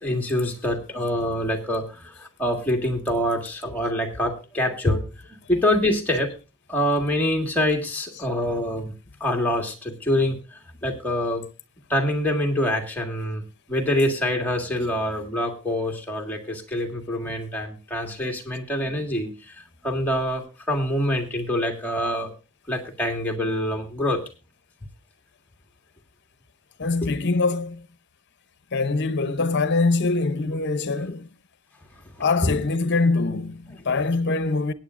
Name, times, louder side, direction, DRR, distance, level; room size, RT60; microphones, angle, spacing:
voice 1, 0.0-5.0 5.3-6.3 6.7-8.9 9.2-11.4 11.9-13.4 13.7-22.3 22.7-24.2 27.0-27.1 32.4-32.5, left 1 dB, 10° left, 1.7 m, -25 dB
voice 2, 26.8-27.9 28.7-31.3 32.2-34.7, left 3 dB, 55° left, 0.8 m, -23 dB
22.5 x 9.0 x 2.5 m
head